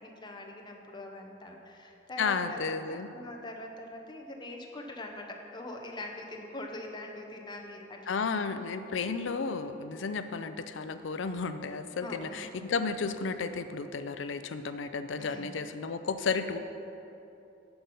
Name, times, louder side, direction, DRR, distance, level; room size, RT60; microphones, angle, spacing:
voice 1, 0.0-8.3 12.0-12.5 15.2-15.5, left 2 dB, 25° left, 2 dB, 0.9 m, -43 dB
voice 2, 2.2-3.1 8.1-16.6, left 4 dB, 90° left, 10 dB, 0.5 m, -33 dB
10.5 x 5.9 x 5.4 m, 2.9 s
head